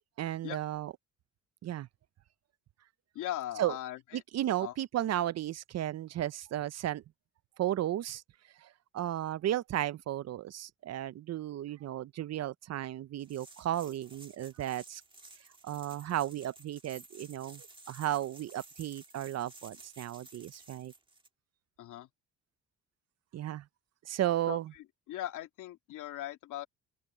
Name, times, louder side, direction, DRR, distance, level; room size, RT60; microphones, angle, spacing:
voice 1, 0.2-0.9 1.6-1.9 3.6-3.8 4.1-7.0 7.6-8.2 8.6-15.0 15.6-20.9 23.3-23.6 24.1-24.7, right 12 dB, 60° right, 0.6 m, -34 dB
voice 2, 3.1-4.2 4.6-4.7 21.8-22.1 24.5-24.6 25.1-26.7, left 13 dB, 90° left, 2.9 m, -39 dB
sound 1, 13.2-21.3, right 2 dB, 15° right, 1.8 m, -54 dB
open air
cardioid pair, 90°, 30 cm